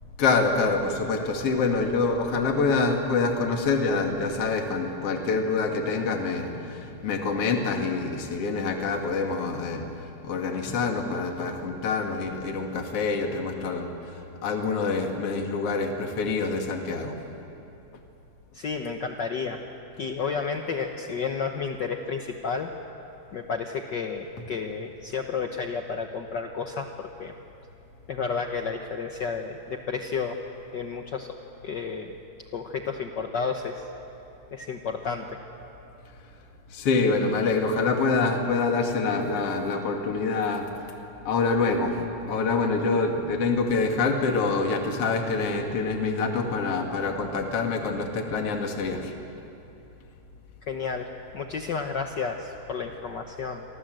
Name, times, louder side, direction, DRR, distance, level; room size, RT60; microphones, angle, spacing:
voice 1, 0.2-9.9 10.2-13.9 14.4-17.1 36.7-40.7 41.2-49.1, left 4 dB, 50° left, 3 dB, 2.9 m, -26 dB
voice 2, 18.5-19.6 20.0-22.7 23.3-27.3 28.1-30.4 30.7-31.4 31.6-32.1 32.5-33.9 34.5-35.4 50.7-53.6, left 5 dB, 75° left, 4 dB, 1.0 m, -31 dB
29.0 x 24.0 x 7.8 m, 2.8 s
omnidirectional pair, 3.6 m